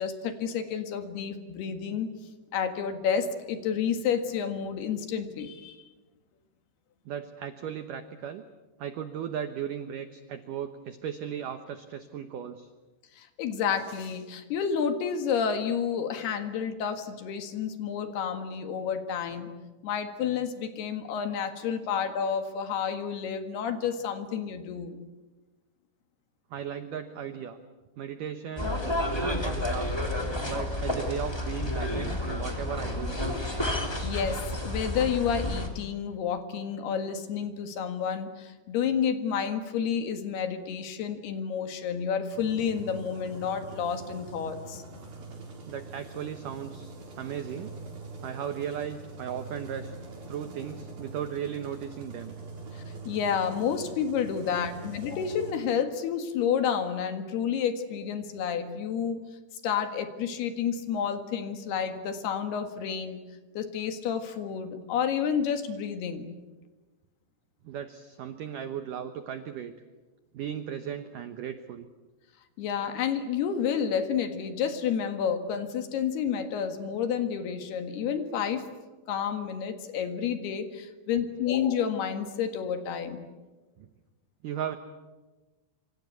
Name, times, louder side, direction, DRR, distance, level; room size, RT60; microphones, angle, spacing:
voice 1, 0.0-2.1 2.5-5.8 13.1-19.5 19.8-25.0 34.0-44.8 52.7-59.2 59.6-63.2 63.6-66.3 72.6-78.7 79.1-83.3, left 7 dB, 65° left, 8 dB, 3.5 m, -30 dB
voice 2, 7.1-8.4 8.8-12.7 26.5-27.6 28.0-28.8 29.1-30.0 30.4-33.1 45.7-47.7 48.2-50.0 50.3-52.4 67.6-69.7 70.3-71.9 83.8-83.9 84.4-84.8, right 9 dB, 80° right, 9 dB, 1.9 m, -36 dB
sound 1, 28.6-35.7, left 1 dB, 10° left, 2.1 m, -30 dB
sound 2, 42.3-55.5, right 3 dB, 50° right, 6.0 m, -44 dB
26.0 x 26.0 x 8.2 m, 1.2 s
omnidirectional pair, 5.3 m